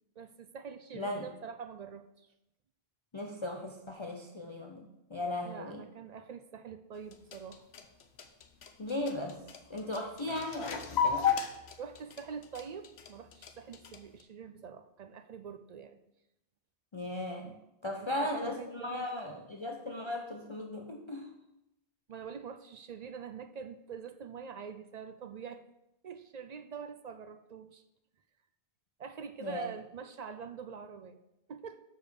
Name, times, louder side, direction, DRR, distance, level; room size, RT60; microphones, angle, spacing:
voice 1, 0.2-2.3 5.4-7.7 11.8-16.0 18.0-19.0 22.1-25.6 26.0-27.8 29.0-31.2 31.5-31.8, right 6 dB, 55° right, 9 dB, 0.5 m, -45 dB
voice 2, 0.9-1.3 3.1-5.8 8.8-9.4 9.7-11.3 16.9-17.5 17.8-21.3 29.4-29.7, left 1 dB, 35° left, 2 dB, 0.6 m, -37 dB
sound 1, 7.0-14.2, left 7 dB, 75° left, 1.0 m, -34 dB
6.4 x 5.0 x 6.5 m, 0.88 s
omnidirectional pair, 1.1 m